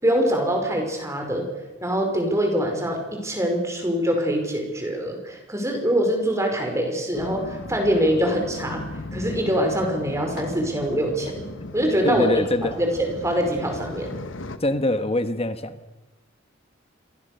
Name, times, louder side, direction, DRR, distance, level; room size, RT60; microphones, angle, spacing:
voice 1, 0.0-1.5 1.8-8.8 9.1-11.4 11.7-12.4 12.8-14.1, equal, 15° right, 3 dB, 5.3 m, -24 dB
sound 1, 7.1-14.6, left 2 dB, 70° left, 1.6 m, -37 dB
voice 2, 12.0-12.8 14.6-15.8, left 1 dB, 30° left, 10 dB, 1.3 m, -24 dB
27.5 x 23.0 x 6.8 m, 1.1 s
head